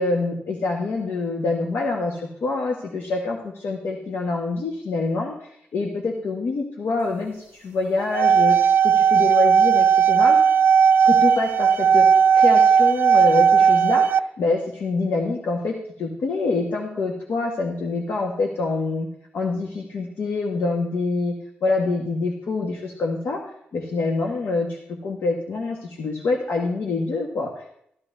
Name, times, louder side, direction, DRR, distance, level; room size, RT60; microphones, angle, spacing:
voice 1, 0.0-10.4 11.0-19.1 19.3-21.3 21.6-23.4 23.7-24.8 25.0-27.7, left 3 dB, 75° left, 0 dB, 1.5 m, -26 dB
sound 1, 8.0-14.2, right 7 dB, 65° right, 0.3 m, -16 dB
15.0 x 12.5 x 2.7 m, 0.73 s
wide cardioid pair, 110°, 4 cm